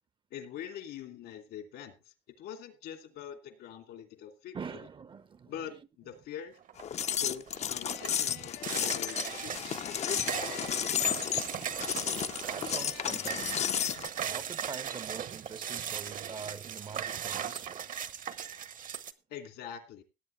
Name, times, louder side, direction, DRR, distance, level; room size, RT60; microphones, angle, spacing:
voice 1, 0.3-4.8 5.5-6.6 7.2-10.2 19.3-20.0, left 9 dB, 80° left, 2.7 m, -44 dB
voice 2, 4.5-5.8 12.5-13.6 14.2-17.9, right 5 dB, 30° right, 0.7 m, -44 dB
sound 1, 6.7-7.1 7.5-19.1, right 8 dB, 50° right, 1.0 m, -38 dB
sound 2, 6.8-14.1, left 9 dB, 40° left, 0.6 m, -33 dB
sound 3, 7.8-11.5 12.8-13.7, left 11 dB, 60° left, 0.9 m, -49 dB
18.0 x 8.4 x 3.3 m
cardioid pair, 110°, 17 cm